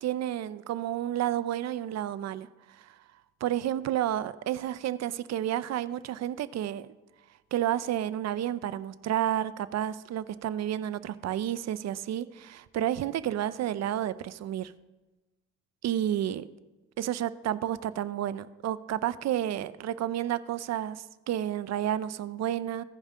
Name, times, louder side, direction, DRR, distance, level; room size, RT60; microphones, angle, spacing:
voice 1, 0.0-3.0 3.4-6.9 7.5-14.7 15.8-16.5 17.0-22.8, right 11 dB, 60° right, 15 dB, 0.5 m, -31 dB
15.5 x 5.4 x 3.7 m, 1.1 s
cardioid pair, 90°, 30 cm